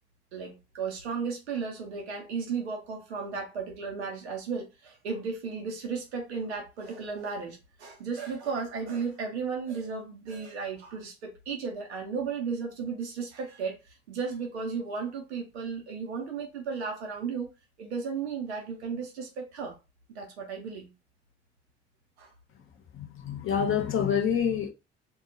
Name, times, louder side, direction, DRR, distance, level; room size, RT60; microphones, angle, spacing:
voice 1, 0.3-17.5 17.8-19.8 20.1-20.9 22.2-22.3, right 5 dB, 90° right, 0.6 m, -34 dB
voice 2, 22.9-24.7, left 8 dB, 40° left, 0.8 m, -27 dB
2.2 x 2.1 x 3.8 m
hypercardioid pair, 55°, 32 cm